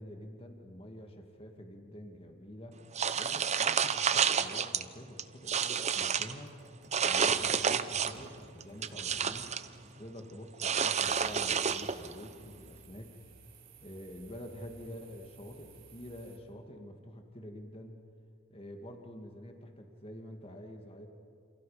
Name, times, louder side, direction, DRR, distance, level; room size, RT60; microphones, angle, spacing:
voice 1, 0.0-2.8 3.1-6.6 7.0-9.5 9.9-13.1 13.8-18.0 18.5-21.1, equal, 30° left, 3 dB, 2.4 m, -47 dB
sound 1, 3.0-4.8 5.2-6.3 6.9-8.3 8.6-9.7 10.6-12.1, right 7 dB, 35° right, 0.8 m, -30 dB
sound 2, 5.9-10.0 11.7-12.4, right 1 dB, 60° right, 3.2 m, -58 dB
sound 3, 10.9-16.4, right 5 dB, 80° right, 4.1 m, -57 dB
28.5 x 28.0 x 5.2 m, 2.2 s
head